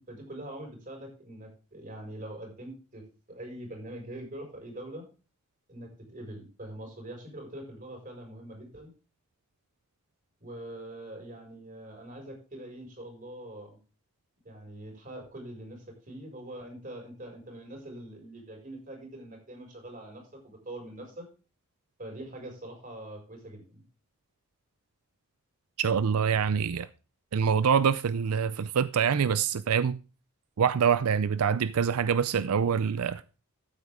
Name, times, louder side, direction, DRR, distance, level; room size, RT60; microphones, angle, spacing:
voice 1, 0.0-3.0 3.3-5.1 5.7-8.9 10.4-13.8 14.4-21.3 22.0-23.8, right 1 dB, 40° right, 5.1 m, -43 dB
voice 2, 25.8-26.9 27.3-30.0 30.6-33.2, right 7 dB, 90° right, 0.5 m, -25 dB
14.0 x 8.1 x 3.5 m
head